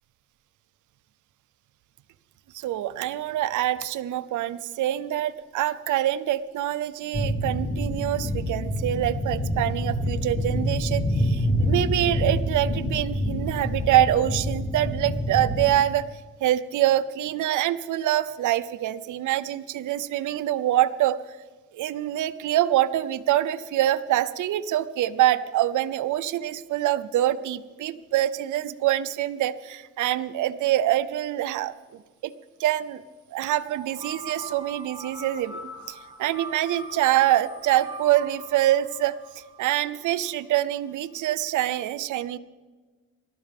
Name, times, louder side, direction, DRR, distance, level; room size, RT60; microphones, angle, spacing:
voice 1, 2.5-16.1 16.4-21.2 21.7-31.7 32.2-32.3 32.6-33.0 33.3-35.6 35.9-39.2 39.6-42.4, right 13 dB, 80° right, 15 dB, 0.7 m, -25 dB
sound 1, 7.1-15.7, equal, 30° left, 2.2 m, -27 dB
sound 2, 33.6-40.4, right 2 dB, 15° right, 5.1 m, -42 dB
21.0 x 13.0 x 3.5 m, 1.3 s
cardioid pair, 90°, 30 cm